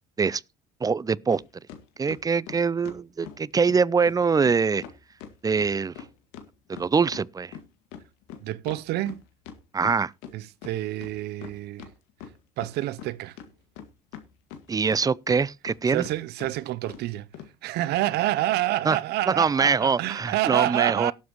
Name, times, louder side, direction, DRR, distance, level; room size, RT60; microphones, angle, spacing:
voice 1, 0.8-1.4 2.0-4.8 5.4-5.9 6.7-7.5 9.7-10.1 14.7-16.0 18.9-19.0 19.3-21.1, right 5 dB, 20° right, 0.5 m, -23 dB
sound 1, 1.3-1.4 1.7-3.4 3.7-3.8 4.1-4.2 4.4-4.5 4.8-7.3 7.5-10.3 10.6-10.7 11.0-11.9 12.2-13.1 13.4-15.0 15.3-15.8 16.0-16.1 16.4-16.5 16.9-17.0 17.3-17.5, left 9 dB, 75° left, 2.0 m, -42 dB
voice 2, 8.4-9.2 10.3-11.9 12.6-13.4 15.9-17.3 17.6-21.1, right 15 dB, 65° right, 0.6 m, -28 dB
18.0 x 7.4 x 3.0 m
hypercardioid pair, 70°, 19 cm